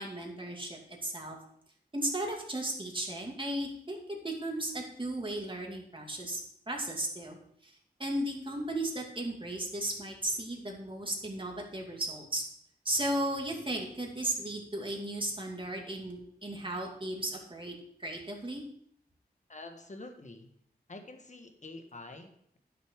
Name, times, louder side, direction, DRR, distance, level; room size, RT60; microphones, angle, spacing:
voice 1, 0.0-1.4 1.9-6.4 6.7-7.4 7.6-12.4 12.8-17.7 18.0-18.6, right 1 dB, 30° right, 0 dB, 2.6 m, -35 dB
voice 2, 19.5-20.5 20.9-22.6, left 2 dB, 45° left, 5 dB, 1.5 m, -47 dB
10.5 x 6.8 x 4.8 m, 0.69 s
wide cardioid pair, 60°, 17 cm